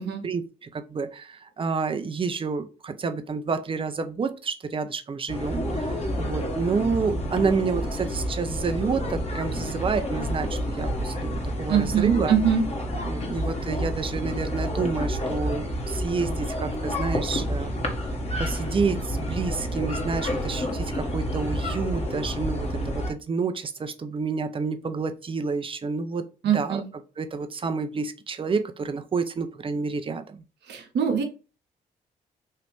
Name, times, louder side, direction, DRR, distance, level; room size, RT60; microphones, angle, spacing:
voice 1, 0.2-12.4 13.0-17.7 18.4-26.8 27.2-30.4, right 5 dB, 25° right, 0.5 m, -29 dB
sound 1, 5.3-23.1, equal, 35° left, 1.1 m, -29 dB
voice 2, 11.7-12.6 26.4-26.9 30.7-31.2, right 8 dB, 60° right, 0.9 m, -23 dB
3.2 x 2.4 x 3.1 m
hypercardioid pair, 45°, 20 cm